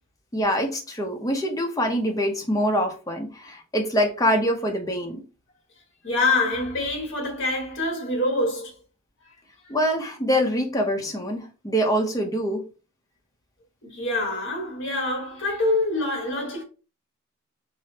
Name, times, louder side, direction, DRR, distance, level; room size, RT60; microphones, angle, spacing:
voice 1, 0.3-5.2 9.7-12.6, equal, 15° left, 0.6 m, -24 dB
voice 2, 6.0-8.7 9.6-9.7 13.8-16.6, left 2 dB, 55° left, 1.4 m, -25 dB
4.8 x 2.0 x 2.7 m
head